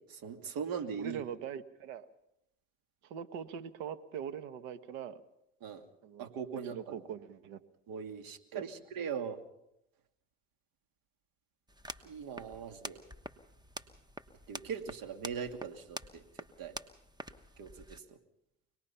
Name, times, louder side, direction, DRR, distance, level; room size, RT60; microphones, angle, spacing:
voice 1, 0.1-1.2 5.6-5.8 6.2-7.0 7.9-9.4 12.0-13.0 14.5-16.2 16.6-16.8 17.6-18.2, right 6 dB, 60° right, 6 dB, 2.5 m, -40 dB
voice 2, 1.0-2.1 3.0-5.2 6.0-6.3 6.7-7.6 8.5-8.6, right 8 dB, 80° right, 12 dB, 1.4 m, -42 dB
sound 1, 11.7-18.0, right 1 dB, 10° right, 1.2 m, -47 dB
25.0 x 19.5 x 5.7 m, 0.82 s
supercardioid pair, 85°, 38 cm